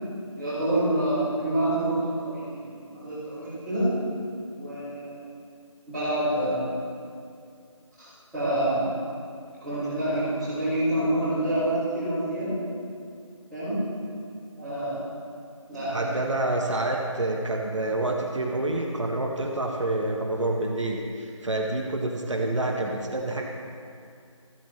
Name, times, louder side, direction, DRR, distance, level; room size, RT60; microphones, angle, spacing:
voice 1, 0.4-3.9 4.5-5.2 5.9-6.7 8.0-8.1 8.3-8.9 9.6-12.5 13.5-13.9 14.6-15.0 15.7-16.2, right 1 dB, ahead, -23 dB, 2.6 m, -27 dB
voice 2, 15.9-23.4, right 2 dB, 65° right, 0 dB, 1.3 m, -28 dB
14.5 x 8.4 x 3.3 m, 2.4 s
figure-of-eight pair, 175°, 17 cm